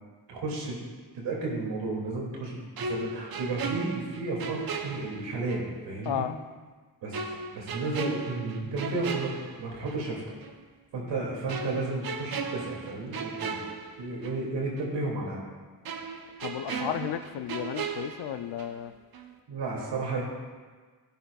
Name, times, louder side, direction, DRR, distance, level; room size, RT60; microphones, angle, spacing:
voice 1, 0.3-0.8 1.1-6.2 7.0-7.1 7.5-10.2 10.9-13.6 14.0-15.4 19.5-20.2, right 2 dB, 90° right, -3 dB, 2.6 m, -32 dB
sound 1, 2.8-5.7 6.0-6.2 7.1-10.1 10.4-10.6 11.5-14.5 14.8-14.9 15.8-18.9 19.1-19.4, right 5 dB, 60° right, 1.0 m, -37 dB
voice 2, 16.4-18.9, left 10 dB, 75° left, 10 dB, 0.6 m, -33 dB
13.0 x 9.3 x 2.4 m, 1.4 s
supercardioid pair, 55°, 42 cm